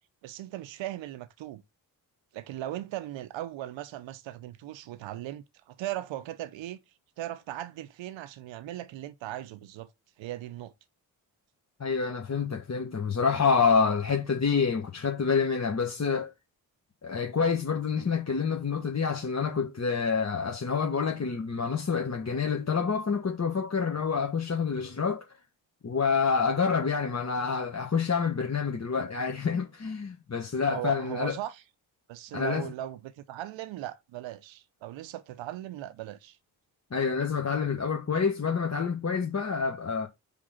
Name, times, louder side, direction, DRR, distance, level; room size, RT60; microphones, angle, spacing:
voice 1, 0.2-1.6 2.3-6.8 7.2-9.9 10.2-10.7 30.7-31.6 32.1-36.4, right 13 dB, 65° right, 0.8 m, -38 dB
voice 2, 11.8-16.3 17.0-25.2 25.8-31.4 32.3-32.7 36.9-40.1, left 5 dB, 30° left, 1.3 m, -27 dB
5.2 x 3.5 x 5.6 m
hypercardioid pair, 40°, 49 cm